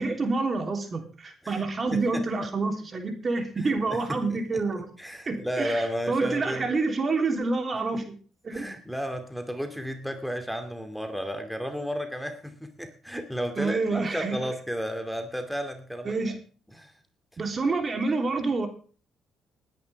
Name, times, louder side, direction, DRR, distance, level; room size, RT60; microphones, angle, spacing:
voice 1, 0.0-4.9 5.3-5.8 6.1-8.0 8.4-8.7 13.6-14.3 16.0-16.4 17.4-18.7, right 3 dB, 40° right, 5 dB, 3.4 m, -27 dB
voice 2, 1.9-2.5 3.6-4.4 5.0-6.8 8.5-16.1 16.7-16.9, equal, ahead, 6 dB, 2.5 m, -33 dB
20.0 x 10.5 x 3.5 m, 0.40 s
supercardioid pair, 55°, 0 cm